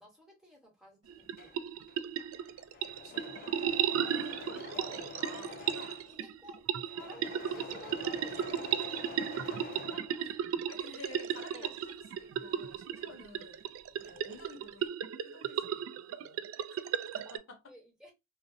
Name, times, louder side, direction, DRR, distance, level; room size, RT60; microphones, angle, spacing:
voice 1, 0.0-1.7 3.7-4.2 4.7-5.8 6.1-9.0 9.9-10.3 10.8-11.2 11.5-11.8 12.9-13.2 14.0-14.1 15.4-15.6 16.7-17.0 17.7-18.1, equal, 5° right, 1.1 m, -54 dB
Engine / Mechanisms, 1.1-10.7 11.1-13.4 13.7-14.4, left 5 dB, 45° left, 0.3 m, -48 dB
sound 1, 1.1-17.4, right 9 dB, 75° right, 0.3 m, -35 dB
voice 2, 2.9-3.4 4.0-6.0 9.5-9.6 10.2-10.3 10.7-13.7 14.0-14.9 15.2-16.5 17.1-17.7, left 3 dB, 75° left, 0.7 m, -51 dB
2.4 x 2.0 x 2.6 m
head